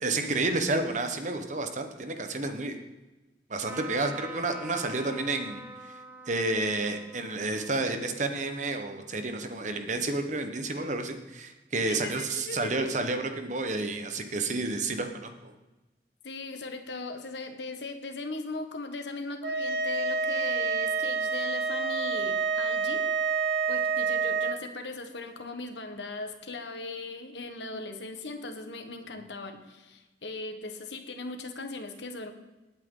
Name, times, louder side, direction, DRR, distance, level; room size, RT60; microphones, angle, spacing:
voice 1, 0.0-2.8 3.5-5.6 6.3-15.5, right 2 dB, 45° right, 6 dB, 1.3 m, -30 dB
Trumpet, 3.6-9.2, right 1 dB, 10° right, 1.2 m, -46 dB
voice 2, 11.9-12.9 16.2-23.1 23.7-32.3, left 3 dB, 85° left, 6 dB, 1.5 m, -39 dB
sound 1, 19.4-24.6, right 5 dB, 70° right, 0.9 m, -28 dB
19.5 x 8.9 x 4.0 m, 1.1 s
head